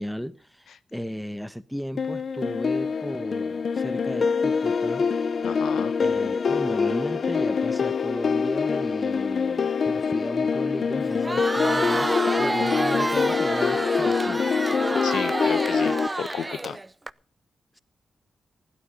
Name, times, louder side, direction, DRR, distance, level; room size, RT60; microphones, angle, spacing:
voice 1, 0.0-5.0 6.0-14.4, equal, ahead, 1.1 m, -35 dB
sound 1, 2.0-16.1, left 5 dB, 55° left, 0.6 m, -25 dB
voice 2, 5.4-5.9 15.0-16.8, left 8 dB, 90° left, 0.8 m, -33 dB
Crowd, 11.1-17.1, right 2 dB, 15° right, 0.6 m, -28 dB
16.0 x 11.5 x 5.4 m
cardioid pair, 95°, 0 cm